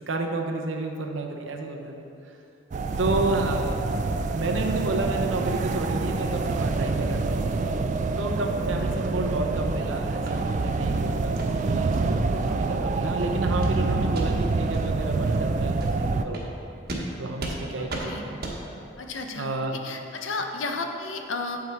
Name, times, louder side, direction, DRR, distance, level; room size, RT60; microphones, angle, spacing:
voice 1, 0.0-2.1 3.0-3.8 4.3-7.4 8.2-11.3 11.7-16.4 17.2-18.4 19.3-19.7, right 2 dB, 85° right, 3 dB, 0.8 m, -31 dB
sound 1, 2.7-16.3, right 3 dB, 40° right, 0.3 m, -26 dB
sound 2, 10.2-10.4 10.8-10.9 11.3-11.5 11.9-12.0 12.5-12.6 13.0-13.2 13.6-13.8 14.1-14.2 14.7-14.8 15.2-15.4 15.8-15.9 16.3-16.5 16.9-17.0 17.4-17.6 17.9-18.0 18.4-18.6, right 2 dB, 55° right, 1.1 m, -35 dB
voice 2, 17.8-18.2 19.0-19.5 19.8-21.6, left 3 dB, 85° left, 4 dB, 0.7 m, -33 dB
7.6 x 5.7 x 4.5 m, 2.9 s
head